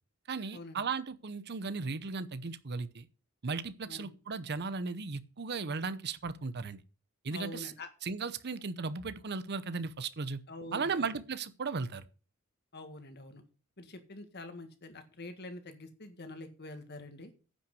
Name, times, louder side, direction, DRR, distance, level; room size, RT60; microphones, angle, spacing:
voice 1, 0.3-3.1 3.4-6.8 7.2-7.7 8.0-10.4 10.7-12.0, right 4 dB, 50° right, 0.8 m, -36 dB
voice 2, 7.3-7.9 10.5-11.2 12.7-13.4 13.8-17.3, left 2 dB, 50° left, 1.8 m, -46 dB
10.0 x 5.8 x 7.7 m
head